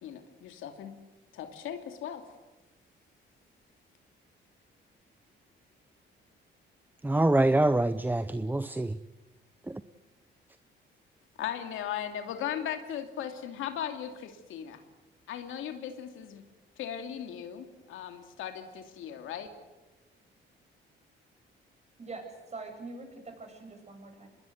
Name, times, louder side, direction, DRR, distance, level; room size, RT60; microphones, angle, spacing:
voice 1, 0.0-1.0 1.3-2.2 11.4-14.8 15.3-16.4 16.8-19.5, left 9 dB, 85° left, 2.7 m, -37 dB
voice 2, 7.0-9.0 9.7-9.8, right 2 dB, 10° right, 0.7 m, -25 dB
voice 3, 22.0-24.3, right 3 dB, 35° right, 7.3 m, -44 dB
25.5 x 21.0 x 8.1 m
cardioid pair, 90°, 20 cm